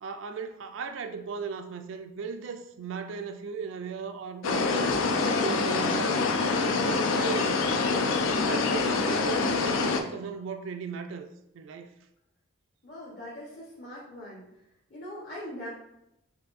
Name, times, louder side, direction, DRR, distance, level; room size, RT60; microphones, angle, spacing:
voice 1, 0.0-6.2 6.6-7.8 8.4-11.3 11.5-11.9, right 5 dB, 65° right, 0.3 m, -37 dB
sound 1, 4.4-10.0, left 4 dB, 75° left, 0.4 m, -26 dB
voice 2, 12.8-14.5 14.9-15.7, left 1 dB, 45° left, 0.9 m, -41 dB
5.8 x 2.6 x 2.4 m
head